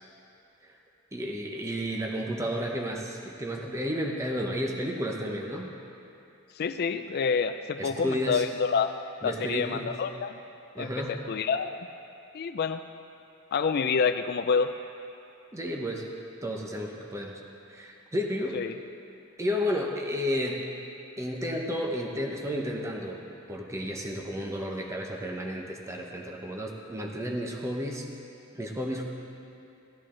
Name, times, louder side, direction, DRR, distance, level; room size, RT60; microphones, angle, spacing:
voice 1, 1.1-5.7 7.8-8.4 9.2-9.9 10.7-11.2 15.5-16.1 16.4-17.4 17.7-18.7 19.4-20.6 21.2-23.2 23.5-28.1 28.5-29.0, equal, 15° right, 0 dB, 0.9 m, -32 dB
voice 2, 6.6-8.9 9.2-10.4 10.8-11.8 12.3-12.8 13.5-14.7 18.5-18.7, left 5 dB, 50° left, 9 dB, 0.4 m, -28 dB
16.0 x 11.0 x 3.8 m, 2.7 s
head